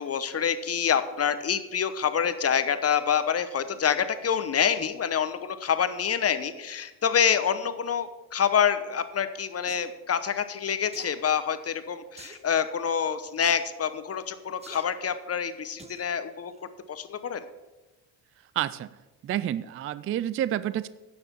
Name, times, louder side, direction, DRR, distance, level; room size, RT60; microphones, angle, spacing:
voice 1, 0.0-16.5 16.9-17.4, left 7 dB, 35° left, 11 dB, 0.9 m, -27 dB
sound 1, 9.7-9.9 10.9-11.2 12.2-12.5 13.4-13.6 14.6-14.8 15.8-16.1 16.5-16.6, right 2 dB, 15° right, 1.0 m, -46 dB
voice 2, 18.6-18.9 19.2-20.9, right 12 dB, 30° right, 17 dB, 0.4 m, -29 dB
9.9 x 6.9 x 6.8 m, 1.1 s
supercardioid pair, 85°, 43 cm